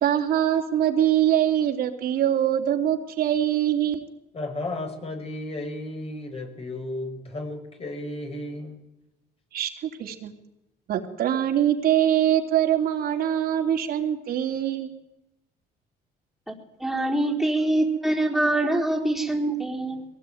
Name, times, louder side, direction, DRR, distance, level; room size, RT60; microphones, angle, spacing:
voice 1, 0.0-4.1 9.5-10.3 10.9-14.9, right 10 dB, 60° right, 3 dB, 3.2 m, -23 dB
voice 2, 4.3-8.8, left 2 dB, 35° left, 4 dB, 6.3 m, -34 dB
voice 3, 16.8-20.0, right 1 dB, ahead, 1 dB, 4.2 m, -24 dB
22.5 x 18.0 x 9.4 m, 0.88 s
cardioid pair, 110°, 17 cm